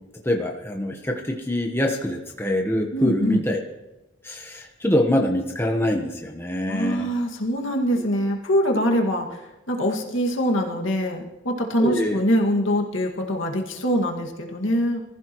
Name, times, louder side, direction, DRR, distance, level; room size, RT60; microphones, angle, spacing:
voice 1, 0.2-3.6 4.2-7.1 11.8-12.2, left 1 dB, 10° left, 1 dB, 1.1 m, -24 dB
voice 2, 2.9-3.4 6.7-15.0, equal, 70° left, 1 dB, 2.1 m, -24 dB
24.5 x 15.0 x 3.1 m, 1.0 s
head